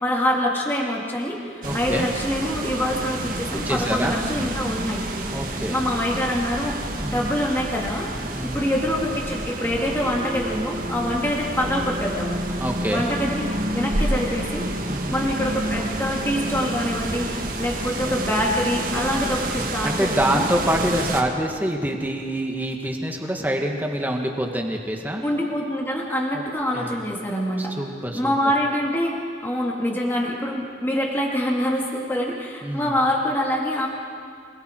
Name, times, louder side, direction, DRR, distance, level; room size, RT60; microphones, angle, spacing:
voice 1, 0.0-5.0 5.7-6.8 7.1-8.1 8.5-12.4 12.9-14.6 15.1-20.5 25.2-27.7 28.1-29.1 29.4-33.9, equal, 10° left, -3 dB, 2.6 m, -25 dB
voice 2, 1.6-2.1 3.7-4.2 5.3-5.8 7.0-7.2 8.3-8.6 12.6-13.1 14.9-15.3 19.8-25.2 26.3-26.4 26.7-26.9 27.6-28.3 32.6-32.9, right 1 dB, 10° right, 1 dB, 1.9 m, -26 dB
sound 1, 1.6-21.2, right 1 dB, 50° right, 1.7 m, -29 dB
27.5 x 21.0 x 4.7 m, 2.1 s
head